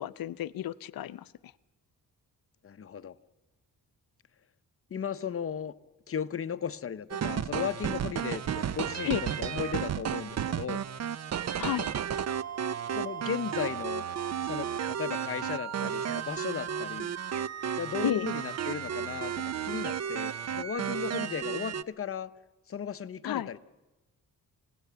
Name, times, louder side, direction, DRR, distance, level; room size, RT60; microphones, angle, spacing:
voice 1, 0.0-1.5 9.1-9.2 11.6-11.9 18.0-18.3 23.2-23.5, left 12 dB, 75° left, 15 dB, 0.7 m, -32 dB
voice 2, 2.6-3.2 4.9-5.7 6.1-10.8 12.9-14.1 14.4-17.1 17.8-22.3 22.7-23.6, left 7 dB, 40° left, 12 dB, 0.8 m, -36 dB
sound 1, 7.1-21.8, right 8 dB, 45° right, 0.6 m, -33 dB
27.5 x 17.5 x 6.9 m, 1.1 s
cardioid pair, 120°, 35 cm